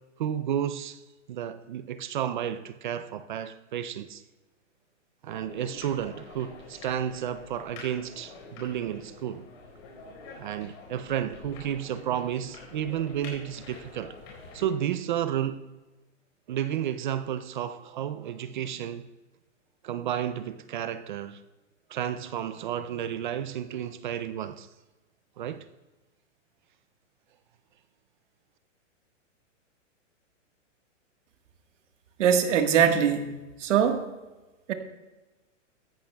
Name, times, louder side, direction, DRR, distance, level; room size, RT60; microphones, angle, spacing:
voice 1, 0.2-1.0 1.3-4.2 5.2-9.4 10.4-14.2 14.5-15.6 16.5-19.1 19.8-21.4 21.9-24.7 25.4-25.7, right 10 dB, 40° right, 0.4 m, -32 dB
sound 1, 5.3-14.6, left 3 dB, 40° left, 4.4 m, -47 dB
voice 2, 32.2-34.1 34.7-34.8, right 8 dB, 65° right, 1.5 m, -22 dB
14.5 x 14.5 x 2.3 m
hypercardioid pair, 150°, 38 cm